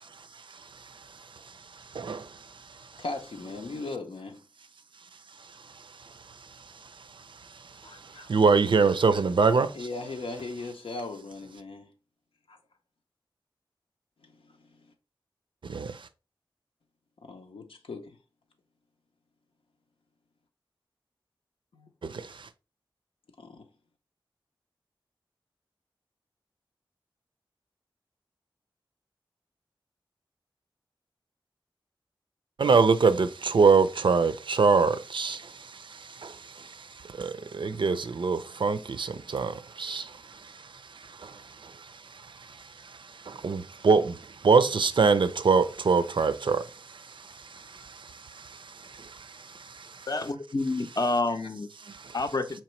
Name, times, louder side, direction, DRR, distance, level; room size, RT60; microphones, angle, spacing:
voice 1, 0.0-3.0 5.4-9.9 15.6-16.1 22.0-22.5 32.6-50.1 51.8-52.2, right 4 dB, 65° right, 0.4 m, -26 dB
voice 2, 3.0-4.4 7.8-8.4 9.7-11.9 12.5-12.6 14.2-14.9 17.2-18.2 21.7-21.9 23.4-23.6 51.3-51.5, left 3 dB, 90° left, 0.7 m, -39 dB
voice 3, 50.1-51.7 52.1-52.6, left 2 dB, 45° left, 0.6 m, -28 dB
4.4 x 3.0 x 3.0 m
wide cardioid pair, 55°, 9 cm